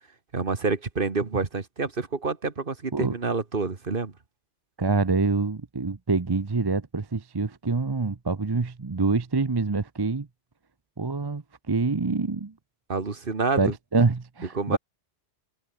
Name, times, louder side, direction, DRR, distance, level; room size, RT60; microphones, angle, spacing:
voice 1, 0.3-4.1 12.9-13.7 14.5-14.8, right 4 dB, 50° right, 1.9 m, -28 dB
voice 2, 4.8-10.3 11.0-12.5 13.6-14.8, right 4 dB, 25° right, 0.7 m, -26 dB
omnidirectional pair, 1.2 m